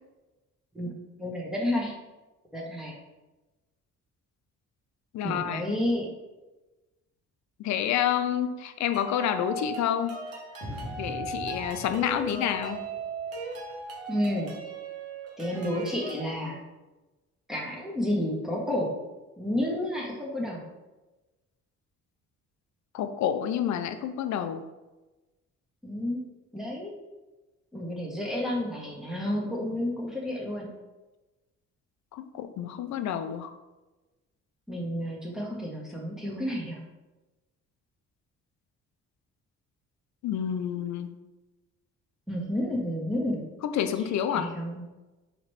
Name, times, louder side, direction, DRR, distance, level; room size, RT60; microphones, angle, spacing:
voice 1, 1.2-1.9 2.5-3.0 5.2-6.1 14.1-14.5 15.4-16.6 17.5-19.0 19.4-20.6 25.8-26.2 26.5-26.9 27.7-30.7 34.7-36.8 42.3-43.4 44.3-44.8, left 1 dB, ahead, -3 dB, 1.1 m, -30 dB
voice 2, 5.1-5.8 7.6-10.2 11.0-12.8 22.9-24.6 32.1-33.5 40.2-41.1 43.6-44.5, left 9 dB, 70° left, 10 dB, 0.5 m, -29 dB
sound 1, 8.9-16.3, right 3 dB, 55° right, 0.9 m, -38 dB
sound 2, 10.6-13.8, equal, 85° right, 1.5 m, -42 dB
4.0 x 2.9 x 3.2 m, 1.1 s
cardioid pair, 90°, 30 cm